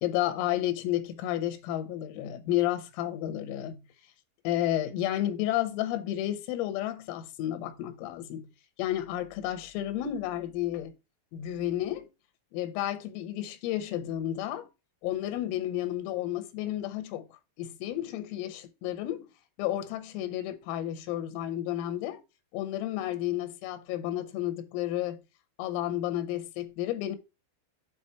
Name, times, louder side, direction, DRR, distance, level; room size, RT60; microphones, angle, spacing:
voice 1, 0.0-3.8 4.5-8.5 8.8-10.9 11.3-12.1 12.5-14.7 15.0-17.3 17.6-19.3 19.6-22.2 22.5-25.2 25.6-27.2, left 13 dB, 85° left, 3.6 m, -31 dB
8.7 x 4.2 x 4.5 m
omnidirectional pair, 5.9 m